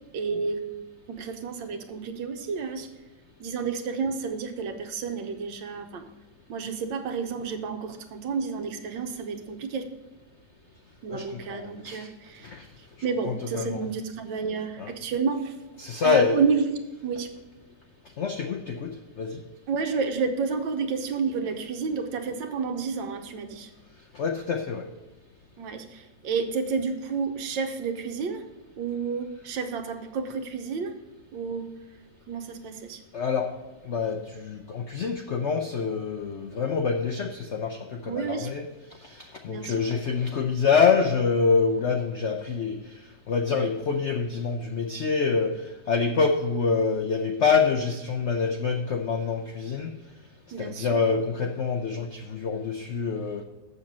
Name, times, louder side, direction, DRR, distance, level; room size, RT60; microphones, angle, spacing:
voice 1, 0.1-0.7 1.1-2.9 3.4-6.0 6.5-9.9 11.0-12.5 13.0-15.6 16.0-16.7 17.0-17.3 19.7-23.7 25.6-28.4 28.8-31.0 31.3-31.7 32.3-33.0 38.0-38.5 39.5-39.7 50.5-51.0, right 5 dB, 80° right, 6 dB, 1.6 m, -30 dB
voice 2, 11.1-12.1 12.4-12.6 13.2-13.8 14.8-14.9 15.8-16.4 18.2-19.4 24.1-24.8 33.1-33.5 33.8-38.6 39.0-42.8 43.3-49.9 50.6-53.4, left 5 dB, 75° left, 4 dB, 0.6 m, -26 dB
7.4 x 6.7 x 5.3 m, 1.1 s
omnidirectional pair, 2.0 m